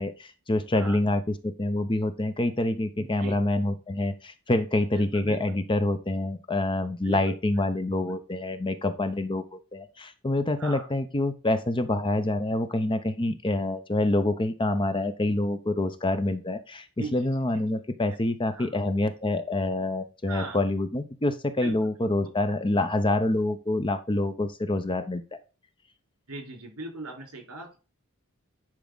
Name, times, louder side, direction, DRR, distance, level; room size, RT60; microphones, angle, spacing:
voice 1, 0.0-25.2, left 2 dB, 20° left, 9 dB, 0.7 m, -27 dB
voice 2, 3.0-3.3 4.9-5.4 7.0-7.2 10.6-10.9 17.0-17.3 18.5-18.7 20.3-20.6 21.6-21.7 22.2-22.3 26.3-27.8, right 3 dB, 70° right, 2 dB, 4.0 m, -39 dB
10.5 x 4.9 x 3.9 m, 0.33 s
head